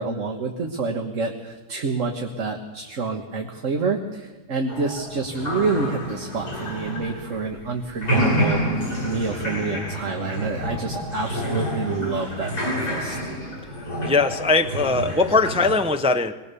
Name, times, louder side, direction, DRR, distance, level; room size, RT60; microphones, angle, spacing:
voice 1, 0.0-13.2, right 4 dB, 55° right, 2 dB, 1.8 m, -28 dB
sound 1, 4.7-7.6 7.9-15.8, equal, 80° left, 8.6 m, -28 dB
voice 2, 14.0-16.3, left 3 dB, 10° right, 7 dB, 0.4 m, -20 dB
23.0 x 20.0 x 6.9 m, 1.1 s
omnidirectional pair, 1.6 m